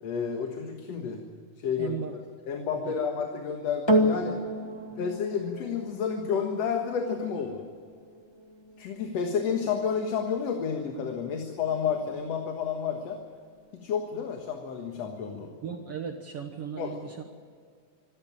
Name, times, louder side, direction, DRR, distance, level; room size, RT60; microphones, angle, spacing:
voice 1, 0.0-1.2 1.6-2.0 2.5-4.4 5.0-7.7 8.8-13.2 13.8-15.5 16.8-17.0, left 6 dB, 60° left, 3 dB, 2.5 m, -30 dB
voice 2, 1.8-2.1 2.7-3.0 15.6-17.2, right 7 dB, 60° right, 4 dB, 1.9 m, -36 dB
sound 1, 3.9-12.4 13.2-13.3, right 1 dB, 45° left, 0.3 m, -32 dB
26.0 x 13.0 x 8.9 m, 2.1 s
omnidirectional pair, 3.5 m